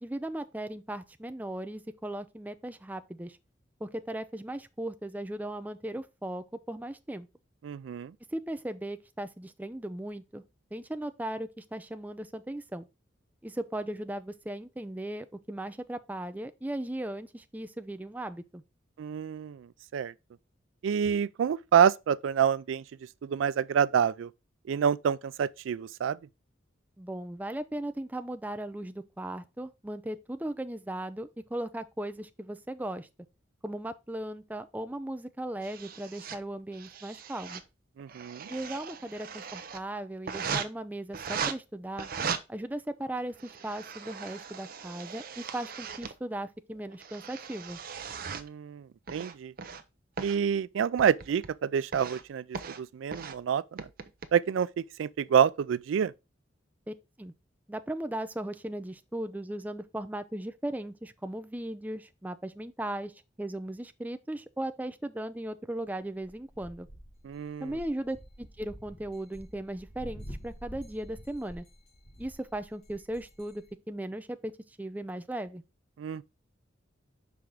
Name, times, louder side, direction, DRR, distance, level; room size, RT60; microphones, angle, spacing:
voice 1, 0.0-3.4 3.8-7.3 8.3-10.4 10.7-12.9 13.4-18.6 27.0-33.1 33.6-37.6 38.5-42.1 42.5-47.8 56.9-57.3 57.7-63.1 63.4-66.9 67.6-71.6 72.2-74.5 74.8-75.6, right 1 dB, 10° right, 0.4 m, -37 dB
voice 2, 7.6-8.1 19.0-19.7 19.9-20.1 20.8-22.8 23.2-24.3 24.7-26.2 38.0-38.5 48.3-48.8 49.1-49.5 50.2-53.9 54.3-56.1 67.2-67.7 76.0-76.2, right 8 dB, 85° right, 0.3 m, -27 dB
sound 1, 35.6-36.4 36.7-37.6 38.0-39.8 40.3-40.7 41.1-41.5 42.0-42.4 43.2-46.1 46.7-48.5 49.1-49.8 50.2-50.4 51.0-51.5 51.9-52.2 52.5-52.8 53.1-53.4 53.8-54.3, right 6 dB, 50° right, 0.6 m, -38 dB
sound 2, 66.2-73.7, equal, 55° left, 2.0 m, -48 dB
5.8 x 4.8 x 3.8 m
head